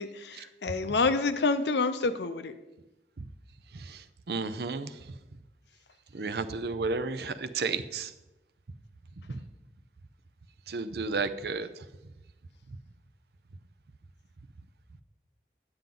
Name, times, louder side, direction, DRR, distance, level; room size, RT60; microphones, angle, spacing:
voice 1, 0.0-2.5, left 3 dB, 75° left, 10 dB, 0.7 m, -28 dB
voice 2, 3.7-5.1 6.1-8.1 9.3-9.4 10.7-11.9, right 4 dB, 65° right, 11 dB, 0.6 m, -33 dB
10.5 x 8.9 x 3.9 m, 1.0 s
head